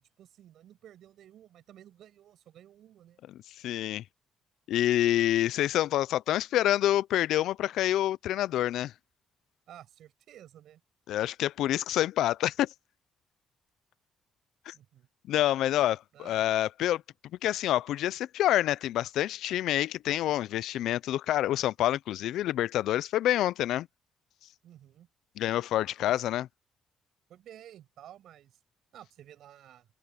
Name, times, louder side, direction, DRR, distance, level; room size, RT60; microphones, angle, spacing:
voice 1, 0.2-3.2 9.7-10.8 14.7-15.1 16.1-16.4 24.6-25.1 26.0-26.1 27.3-28.6 28.9-29.9, right 11 dB, 75° right, 7.2 m, -53 dB
voice 2, 3.6-4.0 4.7-8.9 11.1-12.7 14.7-14.8 15.3-17.0 17.4-23.9 25.4-26.5, left 13 dB, 80° left, 0.4 m, -27 dB
open air
cardioid pair, 90°, 0 cm